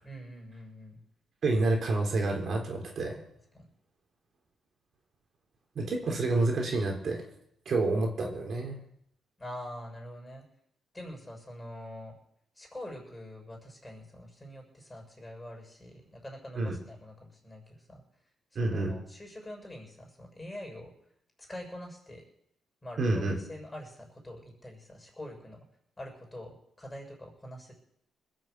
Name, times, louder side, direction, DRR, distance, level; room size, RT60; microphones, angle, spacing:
voice 1, 0.0-1.0 3.5-3.7 9.4-10.4 10.9-12.2 12.6-18.0 18.5-20.9 21.4-22.2 22.8-25.7 26.0-27.7, left 1 dB, 15° left, 0 dB, 7.0 m, -45 dB
voice 2, 1.4-3.2 5.8-7.2 7.7-8.8 16.6-16.7 18.6-18.9 23.0-23.4, right 2 dB, 50° right, 1 dB, 3.6 m, -28 dB
20.5 x 7.7 x 8.1 m, 0.72 s
cardioid pair, 90°, 0 cm